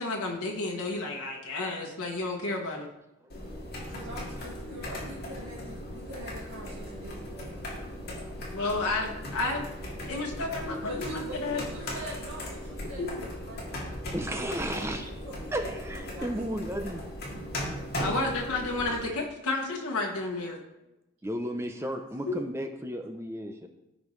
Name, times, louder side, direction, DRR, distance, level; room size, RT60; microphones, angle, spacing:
voice 1, 0.0-2.9 8.5-9.7 10.1-11.6 13.0-13.1 18.0-20.6 22.3-22.4, left 2 dB, 90° left, -1 dB, 1.2 m, -31 dB
sound 1, 3.3-19.1, left 1 dB, 45° left, 2.0 m, -38 dB
voice 2, 3.9-7.6 10.8-13.9 14.2-14.5 14.8-14.9 15.2-15.3 16.0-16.5 21.8-21.9, right 1 dB, 70° right, -5 dB, 1.6 m, -43 dB
voice 3, 14.1-15.1 15.5-17.0 21.2-23.7, right 1 dB, 10° right, 5 dB, 0.6 m, -34 dB
14.5 x 5.1 x 3.2 m, 0.92 s
head